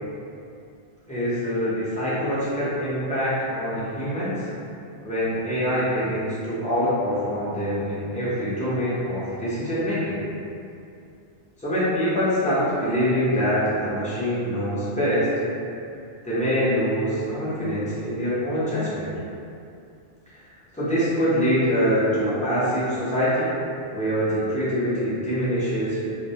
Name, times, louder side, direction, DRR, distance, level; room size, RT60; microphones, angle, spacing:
voice 1, 1.1-4.4 5.0-10.2 11.6-15.3 16.2-19.1 20.7-23.5 23.9-26.1, equal, 10° left, -12 dB, 0.4 m, -24 dB
2.2 x 2.1 x 2.7 m, 2.5 s
omnidirectional pair, 1.2 m